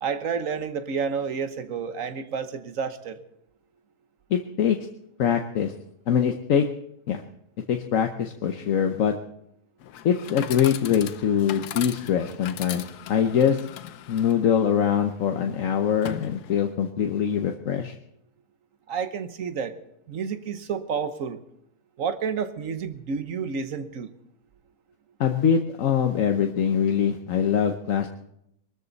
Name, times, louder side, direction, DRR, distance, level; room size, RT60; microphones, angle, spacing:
voice 1, 0.0-3.2 18.9-19.7 20.1-21.4 22.0-24.1, right 6 dB, 60° right, 10 dB, 1.4 m, -30 dB
voice 2, 4.3-4.8 5.2-5.7 6.1-6.7 7.1-7.2 7.7-9.1 10.0-13.6 14.1-17.9 25.2-28.1, left 8 dB, 60° left, 5 dB, 1.2 m, -23 dB
Chatter / Coin (dropping), 9.8-16.8, left 11 dB, 85° left, 1.3 m, -40 dB
23.0 x 13.5 x 4.0 m, 0.77 s
omnidirectional pair, 1.6 m